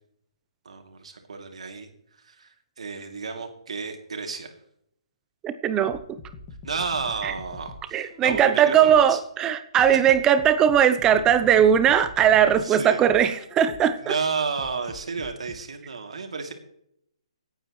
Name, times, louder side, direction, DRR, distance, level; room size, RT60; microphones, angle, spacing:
voice 1, 0.6-1.9 2.2-4.5 6.6-9.2 12.6-13.0 14.0-16.5, right 5 dB, 75° right, 4 dB, 2.8 m, -31 dB
voice 2, 5.4-6.0 7.2-7.3 7.9-14.1, right 9 dB, 15° right, 11 dB, 0.7 m, -19 dB
sound 1, 5.9-9.2 9.8-14.0 14.6-15.6, left 3 dB, 25° left, 1.9 m, -44 dB
27.0 x 9.0 x 3.2 m, 0.73 s
hypercardioid pair, 145°, 3 cm